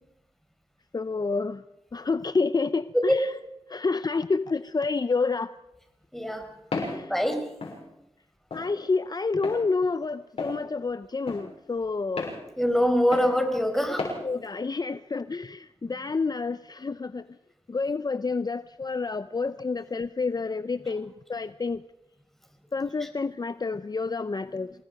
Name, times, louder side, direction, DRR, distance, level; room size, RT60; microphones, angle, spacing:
voice 1, 0.9-1.6 1.9-3.3 3.7-5.5 6.7-7.1 8.5-12.3 14.2-17.2 17.7-21.8 22.7-24.7, left 4 dB, 40° left, 13 dB, 0.7 m, -29 dB
voice 2, 6.1-6.5 7.1-7.5 12.6-14.1 15.8-15.9 23.0-23.1, equal, 5° left, 5 dB, 4.9 m, -24 dB
Walk footsteps, 6.7-7.0 7.6-7.8 8.5-8.7 9.4-9.6 10.4-10.6 11.3-11.4 12.2-12.4 13.1-13.3 14.0-14.2, left 3 dB, 80° left, 6.6 m, -32 dB
26.5 x 19.0 x 5.4 m, 0.88 s
cardioid pair, 55°, 10 cm